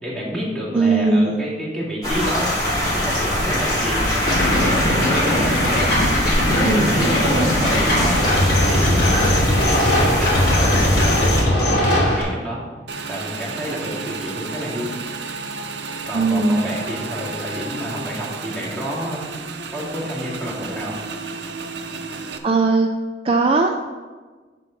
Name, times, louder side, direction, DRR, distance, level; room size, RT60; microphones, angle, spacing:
voice 1, 0.0-2.5 2.9-5.5 6.4-9.2 9.8-12.6 13.1-14.9 16.0-19.2 19.7-21.0, equal, ahead, -7 dB, 2.1 m, -29 dB
voice 2, 0.7-1.4 6.6-7.5 16.1-16.6 22.4-22.9 23.2-23.8, right 3 dB, 30° right, 3 dB, 0.4 m, -19 dB
sound 1, 2.0-11.4, equal, 20° left, 2.2 m, -22 dB
sound 2, 4.3-12.2, left 1 dB, 60° left, 2.5 m, -19 dB
Motorcycle / Engine, 12.9-22.4, right 4 dB, 70° right, 0.7 m, -32 dB
9.7 x 3.8 x 5.4 m, 1.4 s
head